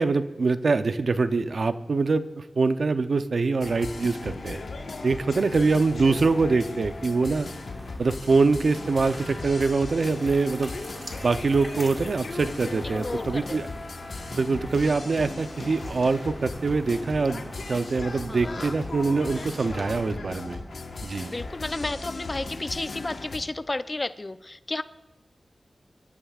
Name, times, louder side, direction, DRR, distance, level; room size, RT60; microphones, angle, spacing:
voice 1, 0.0-4.6 5.0-7.5 8.0-10.7 11.2-13.6 14.3-20.6 21.0-21.3, right 4 dB, 70° right, 10 dB, 0.6 m, -24 dB
sound 1, 3.6-23.4, left 3 dB, 80° left, 1.3 m, -37 dB
sound 2, 5.9-20.1, right 1 dB, 20° right, 2.0 m, -44 dB
voice 2, 12.8-13.6 18.3-18.7 21.3-24.8, left 2 dB, 35° left, 12 dB, 0.5 m, -32 dB
26.0 x 12.5 x 2.4 m, 1.1 s
wide cardioid pair, 65°, 0 cm